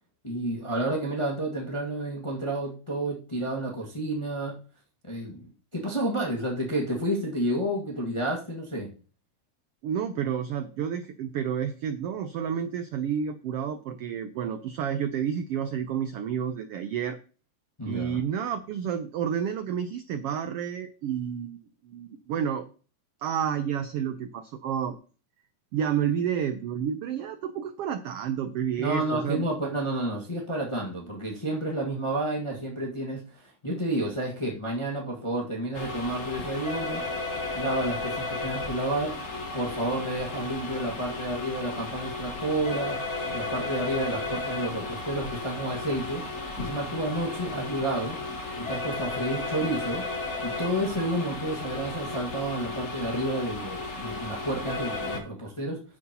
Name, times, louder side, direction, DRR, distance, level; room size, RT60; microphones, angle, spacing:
voice 1, 0.2-4.6 5.0-8.9 17.8-18.2 28.8-37.0 37.5-39.2 39.5-43.0 43.3-46.2 46.6-48.2 48.6-50.0 50.4-55.8, right 1 dB, 15° left, -2 dB, 0.9 m, -30 dB
voice 2, 9.8-17.2 17.9-22.7 23.2-25.0 25.7-29.4, right 8 dB, 80° right, 9 dB, 1.3 m, -30 dB
sound 1, 35.7-55.2, left 2 dB, 80° left, 0.6 m, -34 dB
9.8 x 9.5 x 2.9 m, 0.38 s
omnidirectional pair, 3.5 m